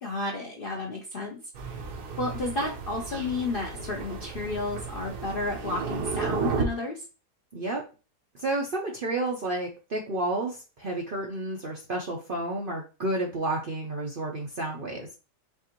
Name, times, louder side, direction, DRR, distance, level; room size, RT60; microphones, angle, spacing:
voice 1, 0.0-1.8 2.2-7.0, left 2 dB, 55° left, 0 dB, 0.6 m, -32 dB
Thunder, 1.5-6.6, right 5 dB, 75° right, 1.4 m, -33 dB
voice 2, 7.5-7.8 8.4-15.1, right 2 dB, 50° right, -1 dB, 0.6 m, -31 dB
5.7 x 2.6 x 2.9 m, 0.33 s
omnidirectional pair, 1.7 m